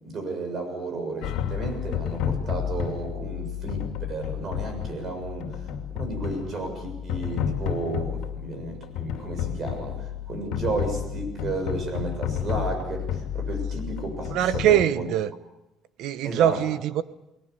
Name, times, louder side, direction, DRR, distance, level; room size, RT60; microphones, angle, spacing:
voice 1, 0.0-15.1 16.2-16.6, right 2 dB, 35° right, 6 dB, 7.0 m, -33 dB
sound 1, 1.2-14.8, left 9 dB, 85° left, 2.5 m, -31 dB
voice 2, 14.3-15.3 16.0-17.0, right 11 dB, 65° right, 14 dB, 1.0 m, -23 dB
29.0 x 20.5 x 6.9 m, 0.92 s
cardioid pair, 160°, 0 cm